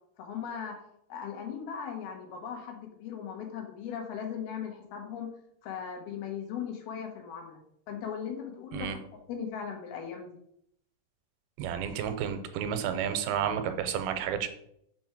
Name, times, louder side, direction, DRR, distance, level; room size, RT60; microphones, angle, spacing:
voice 1, 0.2-0.8 1.1-5.3 5.6-7.6 7.9-8.9 9.3-10.3, left 7 dB, 80° left, 2 dB, 3.3 m, -38 dB
voice 2, 11.6-14.5, right 8 dB, 90° right, 8 dB, 2.5 m, -31 dB
6.3 x 4.4 x 5.9 m, 0.73 s
omnidirectional pair, 4.3 m